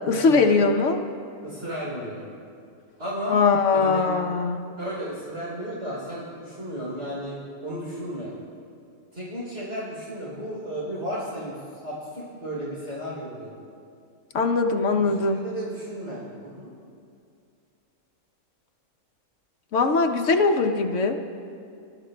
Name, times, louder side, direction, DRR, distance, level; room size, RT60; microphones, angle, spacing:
voice 1, 0.1-1.0 3.3-4.6 14.3-15.4 19.7-21.2, left 4 dB, 60° left, 4 dB, 1.1 m, -21 dB
voice 2, 1.4-2.2 3.0-3.4 3.7-4.1 4.8-8.3 9.1-13.5 15.0-16.7, equal, 50° right, -7 dB, 3.8 m, -34 dB
24.0 x 12.5 x 2.2 m, 2.4 s
omnidirectional pair, 1.5 m